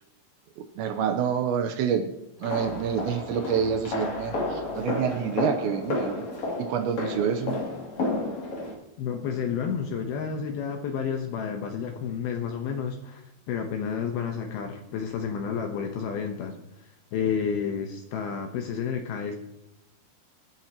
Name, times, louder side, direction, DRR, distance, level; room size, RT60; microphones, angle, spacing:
voice 1, 0.8-2.1 2.4-6.2 6.6-7.6, right 8 dB, 80° right, 7 dB, 2.7 m, -27 dB
sound 1, 2.4-8.7, left 2 dB, 40° left, 3.1 m, -31 dB
voice 2, 9.0-16.5 17.1-19.4, left 7 dB, 80° left, 3 dB, 2.2 m, -30 dB
24.0 x 9.1 x 2.9 m, 0.86 s
omnidirectional pair, 5.9 m